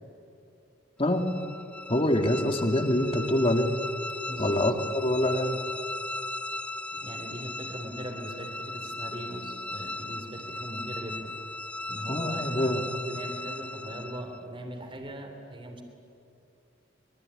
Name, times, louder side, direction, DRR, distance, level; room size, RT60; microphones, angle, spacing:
sound 1, 1.1-14.5, left 2 dB, 5° left, 0.5 m, -37 dB
voice 1, 1.9-3.7 4.4-5.6 12.1-12.8, left 1 dB, 30° left, 6 dB, 2.0 m, -25 dB
voice 2, 4.3-4.6 6.9-11.3 11.9-15.8, right 1 dB, 30° right, 5 dB, 3.3 m, -40 dB
24.5 x 23.0 x 9.9 m, 2.7 s
head